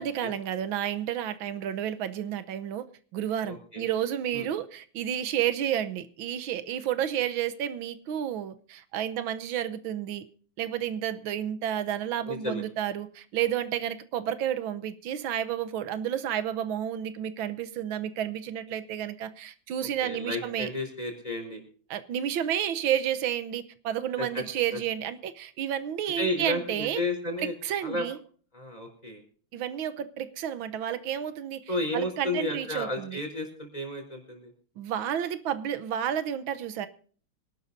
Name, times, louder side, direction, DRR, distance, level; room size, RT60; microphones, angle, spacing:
voice 1, 0.0-2.9 3.1-10.3 10.6-20.7 21.9-27.0 27.6-28.2 29.5-33.2 34.8-36.9, right 10 dB, 90° right, 1.7 m, -31 dB
voice 2, 3.5-3.8 4.3-4.5 12.3-12.6 19.8-21.6 24.2-24.4 26.2-27.5 27.8-28.0 28.5-29.2 31.7-34.5, left 1 dB, 20° left, 3.9 m, -32 dB
25.0 x 11.5 x 2.7 m
omnidirectional pair, 2.1 m